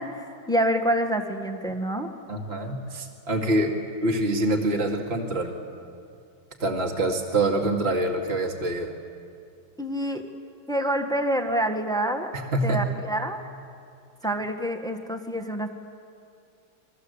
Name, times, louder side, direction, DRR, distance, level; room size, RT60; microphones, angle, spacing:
voice 1, 0.0-2.1 9.8-10.2 10.7-12.3 12.6-13.4 14.2-15.7, right 1 dB, ahead, 5 dB, 1.4 m, -27 dB
voice 2, 2.3-5.5 6.6-8.9 12.5-12.8, right 1 dB, 30° right, 2 dB, 2.5 m, -25 dB
29.0 x 22.5 x 8.1 m, 2.4 s
omnidirectional pair, 2.3 m